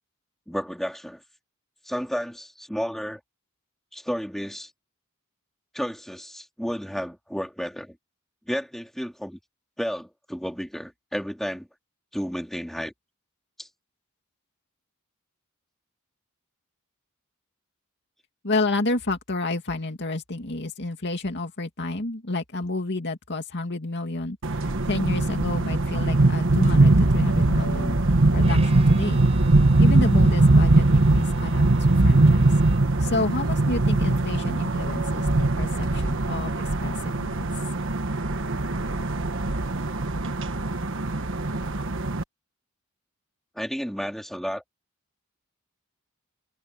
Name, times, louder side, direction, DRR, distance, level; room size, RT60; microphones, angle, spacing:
voice 1, 0.5-1.2 1.8-3.2 3.9-4.7 5.7-8.0 8.5-9.4 9.8-11.7 12.1-12.9 13.6-13.7 43.6-44.6, equal, ahead, 3.8 m, -32 dB
voice 2, 18.4-28.0 28.3-29.2 29.8-32.5 33.0-37.6, left 2 dB, 55° left, 2.4 m, -30 dB
sound 1, 24.4-42.2, right 2 dB, 60° right, 1.4 m, -21 dB
Bowed string instrument, 28.4-33.1, right 4 dB, 30° right, 4.8 m, -46 dB
head